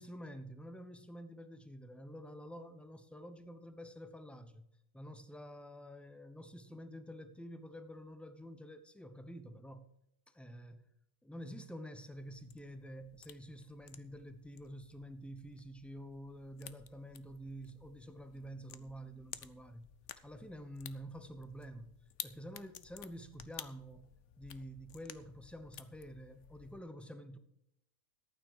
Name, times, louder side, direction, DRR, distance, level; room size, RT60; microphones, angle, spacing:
voice 1, 0.0-4.7 4.9-9.9 10.3-10.9 11.2-19.9 20.2-21.9 22.2-27.4, equal, ahead, 9 dB, 0.7 m, -49 dB
sound 1, 12.1-26.8, left 10 dB, 65° left, 1.0 m, -54 dB
13.5 x 8.9 x 4.9 m, 0.80 s
omnidirectional pair, 1.4 m